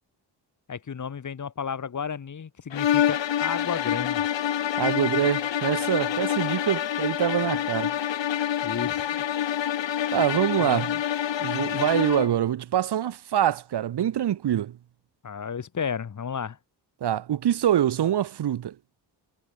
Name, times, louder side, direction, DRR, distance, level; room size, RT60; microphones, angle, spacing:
voice 1, 0.7-4.3 8.6-9.1 10.6-11.0 15.2-16.6, left 6 dB, 45° left, 2.1 m, -32 dB
sound 1, 2.7-12.4, left 10 dB, 90° left, 2.7 m, -27 dB
voice 2, 4.8-7.9 10.1-10.9 11.4-14.8 17.0-18.7, right 11 dB, 65° right, 1.0 m, -25 dB
wide cardioid pair, 160°, 43 cm